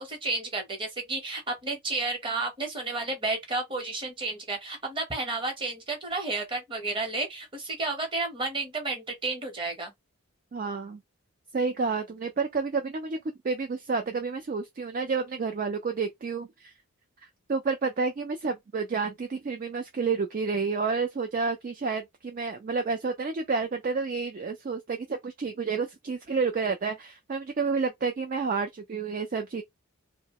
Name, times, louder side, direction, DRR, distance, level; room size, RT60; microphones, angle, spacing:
voice 1, 0.0-9.9, right 3 dB, 25° right, 0.9 m, -32 dB
voice 2, 10.5-11.0 11.5-13.2 13.4-16.7 17.2-29.6, right 4 dB, 40° right, 0.3 m, -30 dB
2.8 x 2.1 x 2.8 m
head